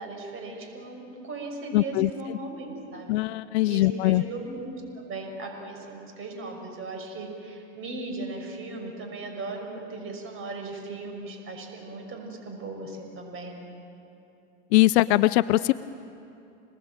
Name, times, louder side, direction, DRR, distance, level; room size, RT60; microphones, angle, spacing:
voice 1, 0.0-3.1 3.7-4.7 5.1-13.6, right 2 dB, 40° right, 2 dB, 5.8 m, -37 dB
voice 2, 1.7-2.4 3.1-4.2 14.7-15.7, left 17 dB, 70° left, 15 dB, 0.6 m, -21 dB
27.5 x 19.5 x 8.9 m, 2.8 s
hypercardioid pair, 105°, 34 cm